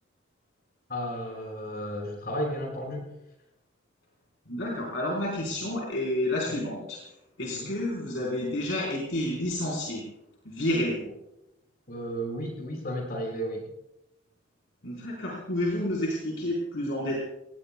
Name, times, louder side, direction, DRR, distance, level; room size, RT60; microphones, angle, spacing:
voice 1, 0.9-3.1 5.5-5.6 6.5-6.6 7.5-7.7 11.9-13.7, equal, 50° left, -2 dB, 6.9 m, -33 dB
voice 2, 4.5-7.0 7.4-10.1 10.4-11.0 14.8-17.2, left 1 dB, 70° left, -4 dB, 4.3 m, -30 dB
29.0 x 19.0 x 2.3 m, 0.90 s
head